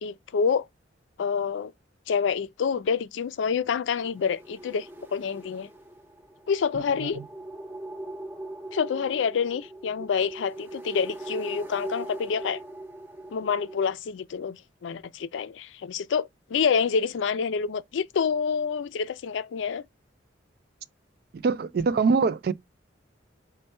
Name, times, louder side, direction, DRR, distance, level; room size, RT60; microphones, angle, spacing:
voice 1, 0.0-0.7 1.2-1.7 2.1-5.7 6.5-7.2 8.7-12.6 13.3-19.8, left 6 dB, 85° left, 0.4 m, -27 dB
sound 1, 3.9-13.8, right 1 dB, 10° right, 0.6 m, -41 dB
voice 2, 21.3-22.5, right 4 dB, 55° right, 0.3 m, -24 dB
5.3 x 2.2 x 4.2 m
head